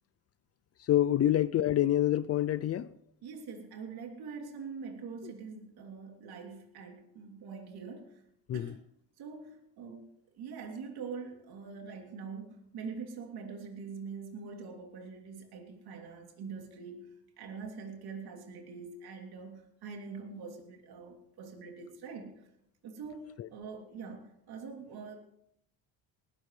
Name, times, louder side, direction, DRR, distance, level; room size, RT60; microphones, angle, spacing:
voice 1, 0.9-2.9 8.5-8.7 23.4-23.5, left 12 dB, 40° left, 0.4 m, -26 dB
voice 2, 3.2-8.2 8.5-8.8 9.2-22.3 22.8-25.2, right 5 dB, 65° right, 3.0 m, -44 dB
19.5 x 13.5 x 3.2 m
cardioid pair, 115°, 40 cm